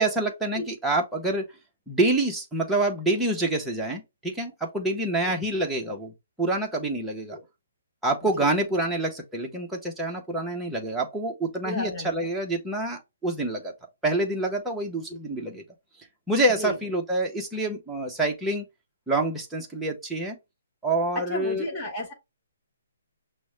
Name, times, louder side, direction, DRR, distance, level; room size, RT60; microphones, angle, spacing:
voice 1, 0.0-1.5 1.9-6.1 6.4-7.4 8.0-13.7 14.0-15.6 16.3-18.7 19.1-20.4 20.8-21.7, right 2 dB, 5° right, 0.8 m, -27 dB
voice 2, 11.6-12.3 15.1-15.2 16.6-16.7 21.1-22.1, left 2 dB, 15° left, 1.1 m, -32 dB
6.1 x 2.1 x 3.2 m
hypercardioid pair, 160°, 0 cm